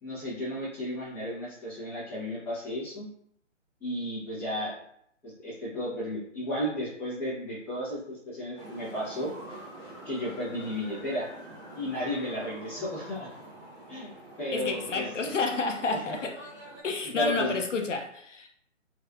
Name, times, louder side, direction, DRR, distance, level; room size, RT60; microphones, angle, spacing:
voice 1, 0.0-3.1 3.8-4.8 5.2-9.3 10.0-11.3 11.7-13.3 13.9-14.1 14.4-15.4 15.9-16.2 17.1-17.6, equal, 5° left, -13 dB, 1.2 m, -33 dB
sound 1, 8.6-16.8, right 1 dB, 20° right, 1.2 m, -46 dB
voice 2, 14.5-16.4 16.8-18.5, left 4 dB, 70° left, 3 dB, 0.6 m, -30 dB
3.2 x 3.2 x 2.5 m, 0.71 s
figure-of-eight pair, 145°, 38 cm